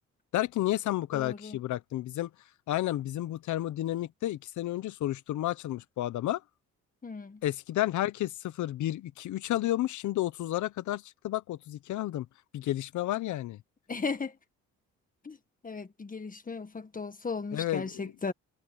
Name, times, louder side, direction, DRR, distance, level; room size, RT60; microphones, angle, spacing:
voice 1, 0.3-2.3 2.7-6.4 7.4-12.3 12.5-13.6 17.5-18.1, left 14 dB, 75° left, 0.9 m, -31 dB
voice 2, 1.1-1.6 7.0-7.4 13.9-14.3 15.2-15.4 15.6-18.3, left 4 dB, 30° left, 1.7 m, -36 dB
cardioid pair, 90°, 30 cm